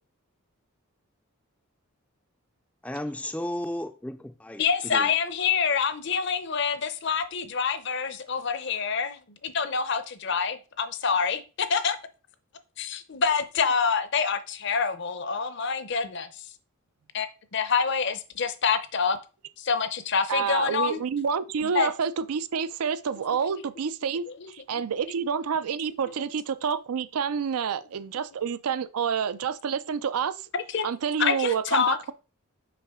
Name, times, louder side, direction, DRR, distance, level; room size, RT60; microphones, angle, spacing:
voice 1, 2.8-5.1, left 1 dB, 5° left, 0.3 m, -34 dB
voice 2, 4.6-12.0 12.8-16.4 17.1-19.2 19.6-21.0 21.6-21.9 24.4-24.8 26.1-26.2 30.5-30.9 31.2-32.0, left 6 dB, 50° left, 0.6 m, -27 dB
voice 3, 20.3-30.4 30.8-32.1, right 6 dB, 85° right, 0.5 m, -28 dB
5.8 x 4.9 x 3.6 m
head